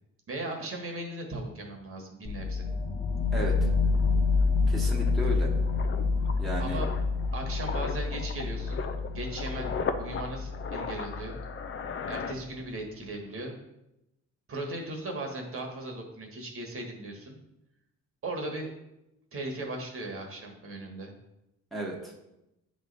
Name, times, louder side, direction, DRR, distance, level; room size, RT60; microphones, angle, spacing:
voice 1, 0.3-2.7 6.6-6.9 7.3-8.8 9.1-9.7 10.0-11.4 12.1-13.6 14.5-17.4 18.2-18.7 19.3-21.1, right 2 dB, 45° right, 2 dB, 1.4 m, -37 dB
sound 1, 2.2-12.1, left 4 dB, 20° left, 1.0 m, -28 dB
voice 2, 3.3-3.7 4.7-5.5 6.4-6.8 21.7-22.1, right 1 dB, ahead, -3 dB, 1.2 m, -34 dB
sound 2, 3.9-13.0 13.2-13.5, left 5 dB, 45° left, 0.6 m, -38 dB
9.1 x 3.2 x 4.0 m, 0.89 s
cardioid pair, 90°, 30 cm